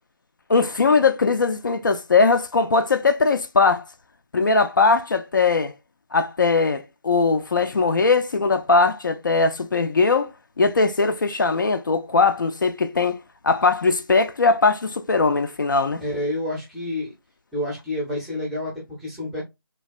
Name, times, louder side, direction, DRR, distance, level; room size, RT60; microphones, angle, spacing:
voice 1, 0.5-3.8 4.3-5.7 6.1-10.3 10.6-13.2 13.4-16.0, left 4 dB, 55° left, 0.4 m, -20 dB
voice 2, 16.0-17.1 17.5-19.4, left 1 dB, ahead, 0.6 m, -29 dB
3.2 x 2.2 x 2.4 m
figure-of-eight pair, 155°, 12 cm